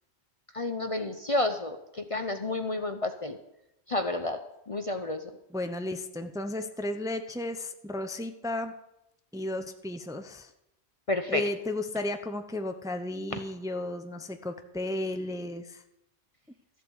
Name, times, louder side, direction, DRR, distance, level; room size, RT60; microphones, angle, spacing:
voice 1, 0.5-3.4 3.9-4.4 4.7-5.3 11.1-11.4, left 2 dB, 35° left, 7 dB, 0.7 m, -30 dB
voice 2, 5.5-8.7 9.3-10.5 11.3-15.8, left 1 dB, 5° right, 7 dB, 0.7 m, -34 dB
14.0 x 7.7 x 8.1 m, 0.85 s
omnidirectional pair, 1.1 m